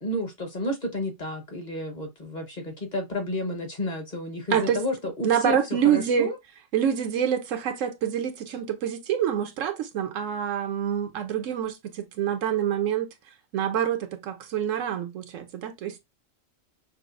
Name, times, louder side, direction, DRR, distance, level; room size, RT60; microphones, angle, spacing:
voice 1, 0.0-6.4, left 1 dB, 40° left, 1.2 m, -31 dB
voice 2, 5.2-6.3 6.7-13.1 13.5-16.0, right 9 dB, 85° right, 1.1 m, -26 dB
5.9 x 2.0 x 2.5 m
omnidirectional pair, 1.3 m